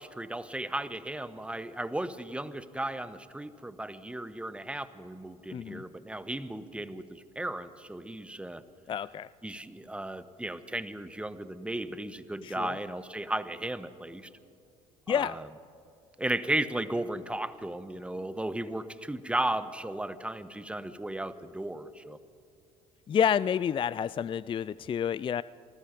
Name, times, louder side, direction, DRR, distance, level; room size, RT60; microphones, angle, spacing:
voice 1, 0.0-8.6 9.4-14.3 15.1-15.4 16.2-22.2, right 1 dB, 5° right, 13 dB, 1.2 m, -35 dB
voice 2, 5.5-5.8 8.9-9.3 12.4-12.8 15.1-15.4 23.1-25.4, left 8 dB, 30° left, 19 dB, 0.4 m, -29 dB
27.0 x 20.0 x 5.2 m, 2.5 s
hypercardioid pair, 60°, 17 cm